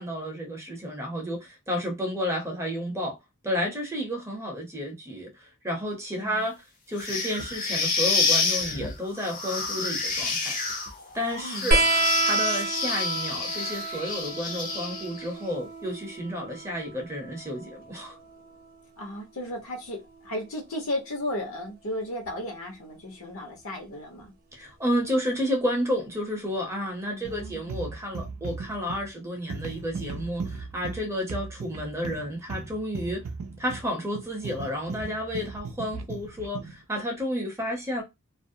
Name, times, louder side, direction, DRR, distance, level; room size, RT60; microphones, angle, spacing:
voice 1, 0.0-3.2 3.4-10.6 11.1-11.9 12.2-18.2 24.5-33.2 33.6-38.0, equal, 15° right, 0.7 m, -31 dB
sound 1, 7.0-15.3, left 4 dB, 40° left, 0.7 m, -29 dB
sound 2, 11.7-18.8 20.1-21.0 22.3-22.4, right 3 dB, 45° right, 0.8 m, -30 dB
voice 2, 19.0-24.3 27.1-27.6, left 1 dB, 65° left, 1.0 m, -35 dB
sound 3, 27.2-36.8, right 4 dB, 75° right, 0.4 m, -37 dB
2.5 x 2.0 x 2.6 m
head